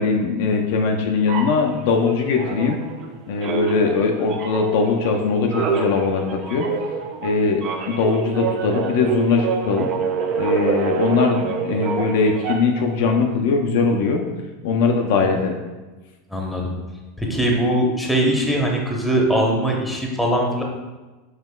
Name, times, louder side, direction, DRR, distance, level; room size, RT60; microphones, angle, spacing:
voice 1, 0.0-2.8 3.3-6.7 7.2-7.6 7.9-9.9 10.4-14.2 14.6-15.6, left 4 dB, 65° left, 2 dB, 0.4 m, -20 dB
sound 1, 1.3-3.1 3.4-12.9, right 6 dB, 45° right, 0.5 m, -27 dB
voice 2, 16.3-16.7 17.2-20.6, right 1 dB, ahead, -1 dB, 0.8 m, -21 dB
5.4 x 2.9 x 2.3 m, 1.2 s
hypercardioid pair, 95°, 0 cm